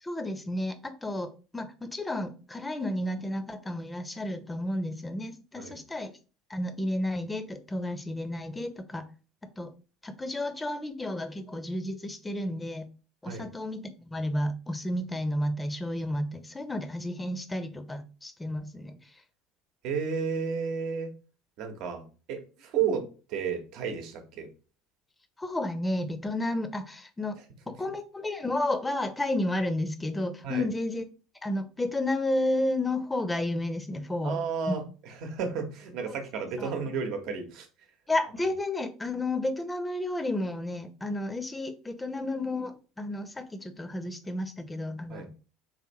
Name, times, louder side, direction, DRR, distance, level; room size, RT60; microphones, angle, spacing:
voice 1, 0.0-6.1 6.5-9.0 9.6-9.7 10.0-12.9 13.2-18.9 22.8-22.9 25.4-27.4 27.7-31.0 31.4-34.4 34.7-34.8 36.6-36.7 38.1-45.4, left 1 dB, 15° left, 10 dB, 0.7 m, -32 dB
voice 2, 19.8-21.1 21.6-24.5 30.4-30.7 34.2-37.7 45.1-45.3, right 6 dB, 55° right, 5 dB, 1.0 m, -32 dB
4.5 x 3.3 x 3.0 m, 0.35 s
figure-of-eight pair, 70°, 0 cm